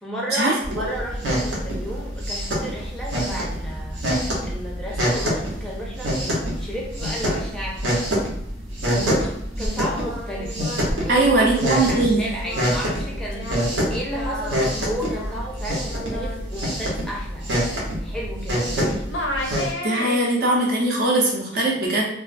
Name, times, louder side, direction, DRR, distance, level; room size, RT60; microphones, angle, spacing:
voice 1, 0.0-8.3 8.8-10.6 11.0-17.5 17.9-19.1 21.5-21.8, equal, 5° left, -4 dB, 0.5 m, -33 dB
sound 1, 0.6-19.7, equal, 85° right, 0.8 m, -26 dB
Singing, 9.8-18.8 19.1-20.5, left 1 dB, 85° left, 0.5 m, -35 dB
voice 2, 11.1-12.2 19.8-22.1, right 2 dB, 60° right, -1 dB, 0.6 m, -20 dB
2.4 x 2.3 x 2.4 m, 0.72 s
head